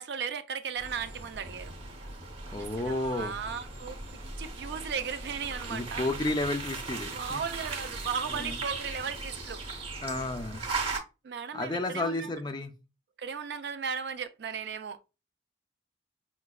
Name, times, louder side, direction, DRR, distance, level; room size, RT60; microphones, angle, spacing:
voice 1, 0.0-1.7 2.8-4.0 4.4-6.1 7.1-9.6 11.2-12.3 13.2-15.0, right 6 dB, 60° right, 0.4 m, -36 dB
sound 1, 0.8-11.0, right 3 dB, 30° right, 0.7 m, -38 dB
voice 2, 2.5-3.4 5.7-7.4 8.3-8.6 10.0-10.6 11.5-12.7, left 2 dB, 25° left, 0.4 m, -32 dB
5.0 x 2.1 x 2.3 m
head